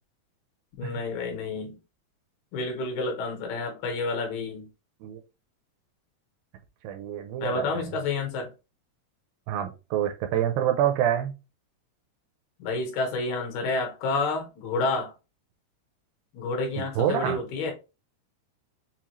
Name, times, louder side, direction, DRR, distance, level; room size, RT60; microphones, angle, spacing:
voice 1, 0.7-1.7 2.5-4.7 7.4-8.5 12.6-15.1 16.3-17.7, left 3 dB, 70° left, 2.9 m, -29 dB
voice 2, 6.8-7.9 9.5-11.3 17.0-17.4, right 10 dB, 80° right, 2.5 m, -26 dB
7.1 x 2.4 x 3.0 m
omnidirectional pair, 4.9 m